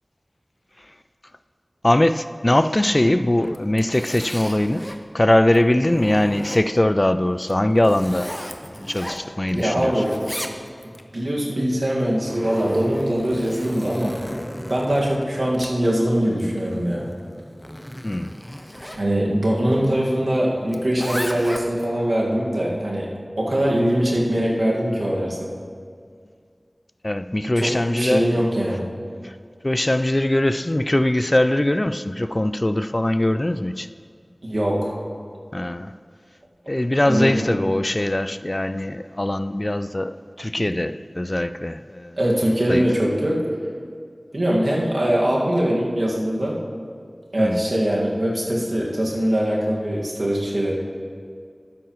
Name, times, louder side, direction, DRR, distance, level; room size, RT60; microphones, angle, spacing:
voice 1, 1.8-4.9 5.1-8.3 8.9-10.0 18.0-18.4 27.0-28.5 29.2-29.4 29.6-33.9 35.5-35.9 36.7-42.2 42.7-42.9 47.4-47.7, left 1 dB, 35° left, 0.3 m, -21 dB
Zipper (clothing), 3.4-5.0 5.5-6.9 7.4-9.6 9.9-11.0 11.9-19.0 20.7-21.9, equal, 10° left, 0.7 m, -35 dB
voice 2, 9.5-10.1 11.1-14.2 14.7-17.1 18.9-23.1 23.4-25.5 27.6-28.8 34.4-34.9 37.0-37.3 42.2-43.4 44.3-46.6 47.3-50.8, equal, 75° right, 1.9 m, -22 dB
12.5 x 9.5 x 3.1 m
wide cardioid pair, 45°, 0 cm